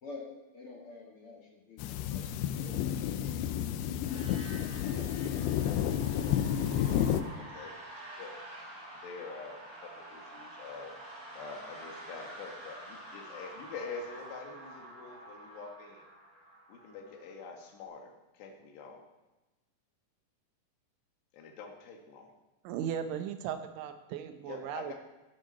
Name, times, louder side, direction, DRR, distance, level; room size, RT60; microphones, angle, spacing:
voice 1, 0.0-4.1 4.6-5.4, left 3 dB, 40° left, -2 dB, 2.3 m, -49 dB
sound 1, 1.8-7.2, left 10 dB, 85° left, 2.4 m, -31 dB
sound 2, 4.0-17.7, right 1 dB, 30° right, 5.2 m, -48 dB
voice 2, 7.4-7.8 8.2-8.4 8.9-10.9 11.4-16.0 16.7-19.0 21.3-22.3 24.5-24.9, left 5 dB, 70° left, 2 dB, 3.8 m, -45 dB
voice 3, 22.6-24.9, right 9 dB, 80° right, 8 dB, 3.3 m, -37 dB
15.5 x 11.0 x 4.2 m, 1.1 s
omnidirectional pair, 5.4 m